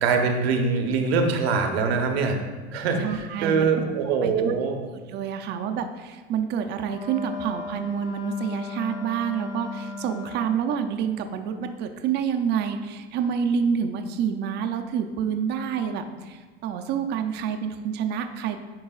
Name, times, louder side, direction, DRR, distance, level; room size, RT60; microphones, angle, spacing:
voice 1, 0.0-2.4 2.7-4.8, right 5 dB, 85° right, 4 dB, 1.0 m, -23 dB
voice 2, 3.0-3.7 4.1-4.5 5.1-18.6, right 7 dB, 35° right, 6 dB, 0.5 m, -28 dB
Wind instrument woodwind instrument, 6.9-10.7, left 4 dB, 70° left, 1.3 m, -37 dB
9.4 x 4.6 x 2.4 m, 1.4 s
supercardioid pair, 125°, 30 cm